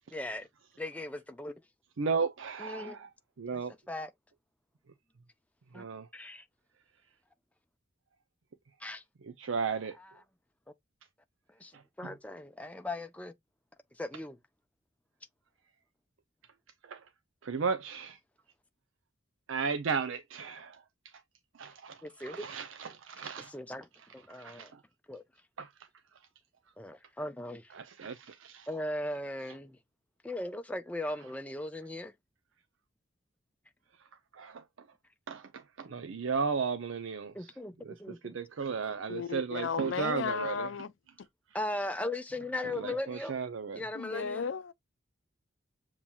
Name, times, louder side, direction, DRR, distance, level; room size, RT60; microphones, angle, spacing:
voice 1, 0.1-0.5 0.8-1.5 2.6-3.0 3.5-4.1 5.7-5.8 6.1-6.5 8.8-9.0 9.9-10.2 11.6-13.3 13.9-14.4 22.0-22.4 22.8-23.0 23.4-23.9 24.1-24.7 25.1-25.2 26.8-27.7 28.7-29.8 30.2-32.1 37.3-38.5 41.5-43.4 43.7-44.4, left 1 dB, 5° left, 0.5 m, -38 dB
voice 2, 2.0-3.1 3.4-3.7 5.8-6.0 9.4-10.0 16.9-17.0 17.4-18.2 19.5-20.8 21.6-22.0 22.3-23.5 24.4-24.7 27.8-28.7 34.4-34.6 35.3-35.4 35.8-37.3 38.3-40.7 42.8-43.8, right 5 dB, 90° right, 0.5 m, -34 dB
voice 3, 39.1-40.9 43.9-44.7, left 6 dB, 75° left, 0.5 m, -34 dB
7.1 x 3.0 x 2.3 m
head